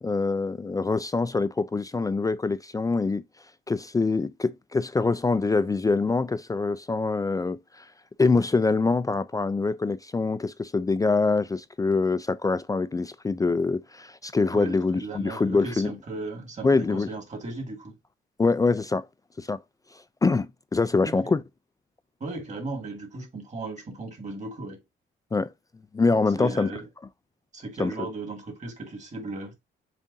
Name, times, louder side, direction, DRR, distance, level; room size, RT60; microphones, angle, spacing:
voice 1, 0.0-3.2 3.7-7.9 8.2-15.9 16.6-17.1 18.4-19.1 19.4-19.6 20.2-21.4 25.3-25.5 25.9-26.7 27.8-27.9, left 3 dB, 15° left, 0.3 m, -24 dB
voice 2, 14.5-18.0 21.0-21.3 22.2-24.8 26.4-26.9 27.5-29.5, right 3 dB, 35° right, 2.1 m, -36 dB
7.3 x 2.5 x 2.6 m
cardioid pair, 90°, 20 cm